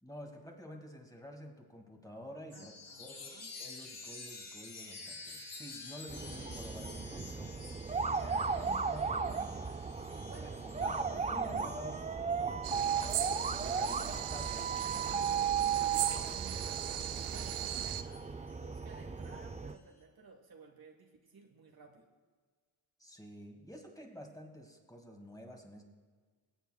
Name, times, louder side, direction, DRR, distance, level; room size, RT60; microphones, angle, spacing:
voice 1, 0.0-7.6 8.0-9.7 10.4-10.5 10.8-12.9 13.6-16.4 23.0-25.8, equal, 5° left, 2 dB, 2.0 m, -50 dB
Chime, 2.5-16.5 16.9-19.8, left 3 dB, 55° left, 3.7 m, -52 dB
voice 2, 2.5-3.5 10.3-11.1 16.1-22.1, right 4 dB, 45° right, 2 dB, 1.4 m, -57 dB
sound 1, 6.1-19.7, right 6 dB, 15° right, 0.5 m, -36 dB
sound 2, 12.6-18.0, right 12 dB, 90° right, 0.6 m, -38 dB
21.5 x 8.1 x 2.3 m, 1.5 s
cardioid pair, 60°, 49 cm